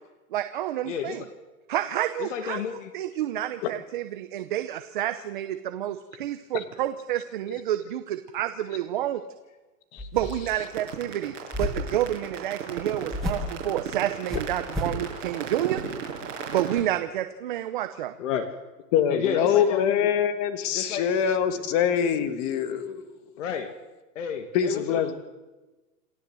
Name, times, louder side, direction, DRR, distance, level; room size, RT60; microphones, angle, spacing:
voice 1, 0.3-1.2 1.7-2.6 2.9-9.2 10.1-15.8 16.5-18.2, right 12 dB, 35° right, 9 dB, 0.8 m, -29 dB
voice 2, 0.9-1.3 2.2-2.9 18.2-18.5 19.1-20.1 20.7-21.1 23.4-23.7 24.2-25.1, left 8 dB, 50° left, 7 dB, 2.0 m, -31 dB
sound 1, 10.0-10.6 11.5-12.0 13.1-13.6 14.3-15.0, left 1 dB, ahead, 1.0 m, -32 dB
sound 2, 10.3-16.8, right 7 dB, 50° right, 6.0 m, -35 dB
voice 3, 18.9-23.1 24.5-25.1, left 8 dB, 25° left, 10 dB, 1.5 m, -24 dB
28.0 x 14.5 x 7.7 m, 1.1 s
hypercardioid pair, 170°, 46 cm